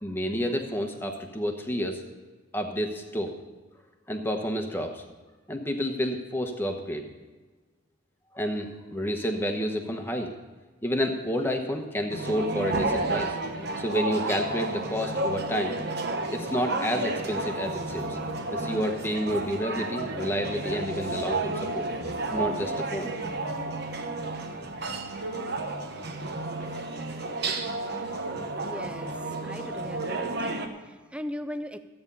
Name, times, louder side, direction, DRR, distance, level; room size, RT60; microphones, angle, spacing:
voice 1, 0.0-2.0 2.5-3.3 4.1-5.0 5.5-7.0 8.3-10.3 10.8-13.3 13.8-15.8 16.3-18.2 18.5-21.9 22.3-23.1, equal, 10° left, 4 dB, 1.0 m, -30 dB
sound 1, 12.1-30.7, right 2 dB, 50° right, 1.0 m, -32 dB
sound 2, 17.7-25.2, left 1 dB, 60° left, 1.2 m, -48 dB
voice 2, 28.6-31.8, equal, 5° right, 10 dB, 0.4 m, -39 dB
13.5 x 8.8 x 5.4 m, 1.3 s
head